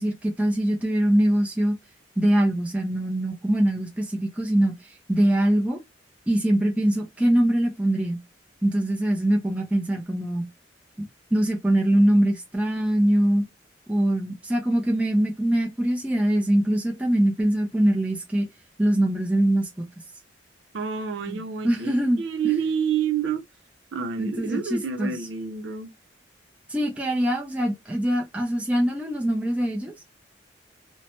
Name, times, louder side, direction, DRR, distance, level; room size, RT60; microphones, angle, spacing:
voice 1, 0.0-1.8 2.2-5.8 6.3-8.2 8.6-10.5 11.3-13.5 13.9-18.5 18.8-19.9 21.3-22.5 24.2-25.2 26.7-29.9, right 1 dB, 5° right, 0.5 m, -23 dB
voice 2, 20.7-23.4 23.9-25.9, right 7 dB, 80° right, 0.5 m, -28 dB
2.6 x 2.1 x 2.9 m
head